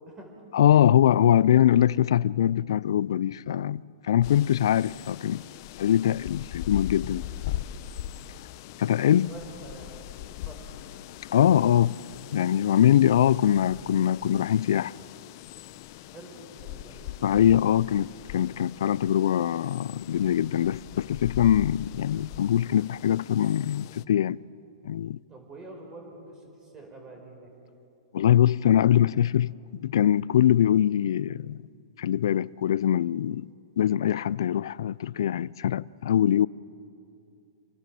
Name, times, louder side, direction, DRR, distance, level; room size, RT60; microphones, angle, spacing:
voice 1, 0.5-5.4 5.8-7.6 8.8-9.3 11.3-12.0 12.3-14.9 17.2-24.4 24.8-25.2 28.1-29.5 29.8-31.6 32.0-36.5, left 10 dB, 75° left, 0.5 m, -23 dB
sound 1, 4.2-24.0, left 13 dB, 50° left, 0.8 m, -41 dB
voice 2, 8.7-10.0 10.4-10.8 12.6-12.8 16.0-17.1 25.3-27.5, right 2 dB, 20° right, 5.0 m, -46 dB
27.0 x 20.5 x 7.7 m
hypercardioid pair, 130°, 2 cm